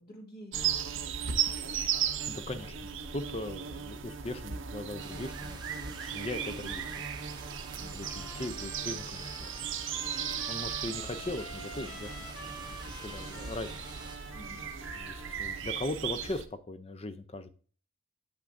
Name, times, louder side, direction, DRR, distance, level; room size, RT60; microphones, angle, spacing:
voice 1, 0.0-2.4 7.7-8.1 11.8-12.1 14.3-14.6, equal, 45° left, 2 dB, 1.7 m, -52 dB
sound 1, 0.5-16.5, right 8 dB, 55° right, 0.7 m, -36 dB
voice 2, 2.3-7.1 7.9-9.5 10.5-13.8 14.9-17.5, left 2 dB, 25° left, 12 dB, 0.5 m, -39 dB
sound 2, 5.0-14.2, right 4 dB, 20° right, 0.6 m, -49 dB
Trumpet, 8.0-15.6, equal, 70° left, 1.7 m, -47 dB
8.1 x 5.9 x 2.6 m, 0.42 s
head